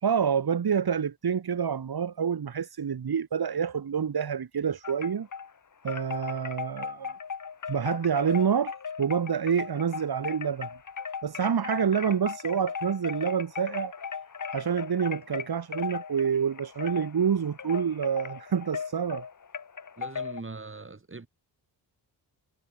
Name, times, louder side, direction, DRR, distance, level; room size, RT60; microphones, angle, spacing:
voice 1, 0.0-5.3 5.8-7.2 7.7-10.7 11.2-13.9 14.5-19.3, right 7 dB, 60° right, 2.9 m, -27 dB
Wind chime, 4.8-5.5 5.9-20.4, left 6 dB, 45° left, 2.0 m, -37 dB
voice 2, 20.0-21.3, right 3 dB, 30° right, 4.5 m, -41 dB
wide cardioid pair, 105°, 43 cm